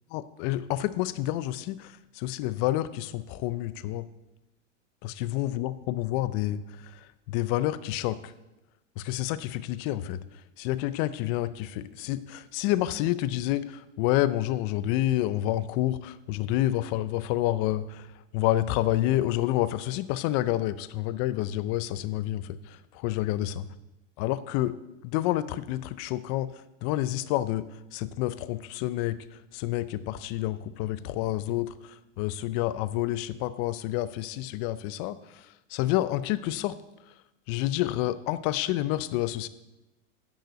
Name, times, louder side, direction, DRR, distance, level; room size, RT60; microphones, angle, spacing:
voice 1, 0.1-4.1 5.0-8.3 9.0-23.6 24.2-24.8 25.0-26.5 26.8-29.2 29.5-36.8 37.1-37.2 37.5-39.5, left 14 dB, 35° left, 15 dB, 0.6 m, -29 dB
10.5 x 5.6 x 7.6 m, 0.99 s
hypercardioid pair, 130°, 37 cm